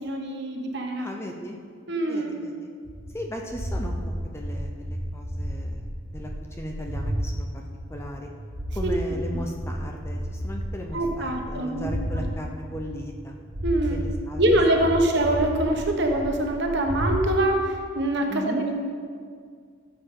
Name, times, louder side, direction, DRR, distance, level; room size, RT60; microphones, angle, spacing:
voice 1, 0.0-1.1 1.9-2.3 8.8-8.9 10.9-11.9 13.6-14.0 14.4-18.7, right 1 dB, 55° right, 2 dB, 1.2 m, -24 dB
voice 2, 1.0-1.6 2.1-2.7 3.1-8.3 8.7-13.4 13.9-14.4 14.8-15.1 18.3-18.6, equal, 10° left, 1 dB, 0.6 m, -37 dB
sound 1, 2.8-7.3 7.7-12.3 12.7-13.2 13.5-17.3, equal, 70° right, 1.7 m, -32 dB
14.0 x 7.2 x 3.8 m, 2.1 s
head